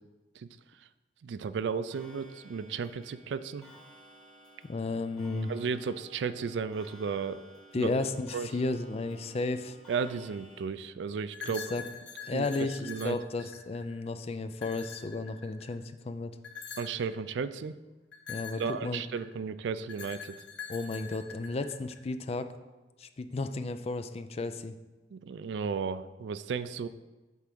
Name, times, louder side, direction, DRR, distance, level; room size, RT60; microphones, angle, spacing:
voice 1, 1.2-3.7 5.5-7.4 7.7-7.9 8.3-8.5 9.9-11.8 12.3-13.2 16.8-17.7 18.6-20.4 25.1-26.9, right 5 dB, 75° right, 14 dB, 0.3 m, -34 dB
Clock, 1.9-10.6, right 1 dB, 5° left, 2.2 m, -55 dB
voice 2, 4.6-5.5 7.7-9.8 11.7-11.8 12.2-16.3 18.3-19.0 20.7-22.5 23.0-24.7, left 3 dB, 35° left, 10 dB, 0.4 m, -33 dB
sound 1, 11.3-14.0 14.5-15.8 16.4-17.1 18.1-19.3 19.9-22.0, left 6 dB, 85° left, 1.3 m, -44 dB
8.1 x 3.5 x 6.0 m, 1.2 s
head